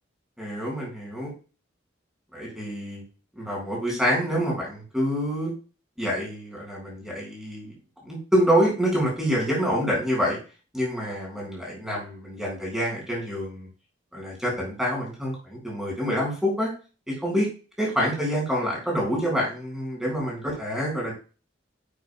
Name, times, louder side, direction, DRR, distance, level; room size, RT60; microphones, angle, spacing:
voice 1, 0.4-1.3 2.3-3.0 3.4-5.5 6.0-7.7 8.0-10.4 10.7-13.7 14.1-16.7 17.1-17.5 17.8-21.1, equal, 5° right, -3 dB, 4.6 m, -26 dB
10.5 x 8.5 x 2.2 m, 0.35 s
head